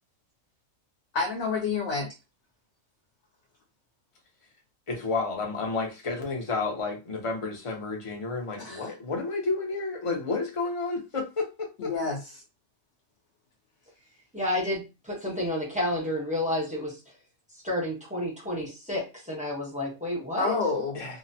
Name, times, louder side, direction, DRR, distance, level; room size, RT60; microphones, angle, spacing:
voice 1, 1.1-2.1 8.6-8.9 11.8-12.4 20.4-21.0, left 4 dB, 60° left, 0 dB, 0.9 m, -29 dB
voice 2, 4.9-11.9 20.9-21.2, left 3 dB, 40° left, 1 dB, 0.5 m, -31 dB
voice 3, 14.3-17.0 17.6-20.5, left 1 dB, 5° right, -4 dB, 0.7 m, -30 dB
2.7 x 2.0 x 2.6 m, 0.28 s
omnidirectional pair, 1.5 m